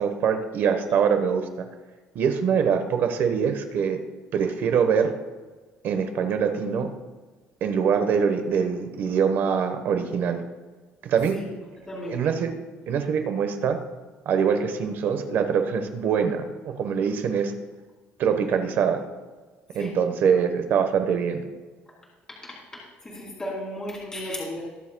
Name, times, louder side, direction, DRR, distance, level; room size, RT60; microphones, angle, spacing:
voice 1, 0.0-1.4 2.1-4.0 4.3-5.1 5.8-6.9 7.6-10.4 11.0-11.4 12.1-12.5 12.9-13.8 14.2-17.5 18.2-19.0 19.7-21.4, right 7 dB, 55° right, 7 dB, 1.1 m, -23 dB
voice 2, 11.9-12.2 19.7-19.9 22.4-22.5 23.0-24.7, left 1 dB, 15° left, -4 dB, 2.5 m, -34 dB
20.5 x 7.2 x 2.3 m, 1.3 s
cardioid pair, 145°, 4 cm